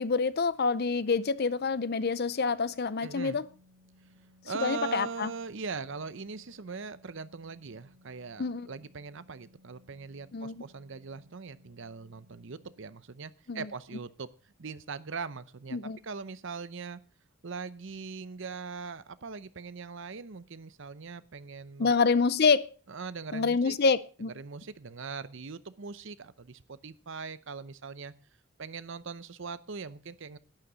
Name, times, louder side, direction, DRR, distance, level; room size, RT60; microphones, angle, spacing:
voice 1, 0.0-3.5 4.6-5.3 8.4-8.7 10.3-10.6 13.5-13.7 15.7-16.0 21.8-22.7 23.3-24.3, left 4 dB, 45° left, 0.5 m, -27 dB
Organ, 2.6-13.2, left 1 dB, 25° right, 5.4 m, -62 dB
voice 2, 3.0-3.4 4.4-17.0 17.4-21.9 22.9-23.8 24.3-28.1 28.6-30.4, right 5 dB, 55° right, 0.7 m, -41 dB
11.5 x 9.8 x 5.0 m
head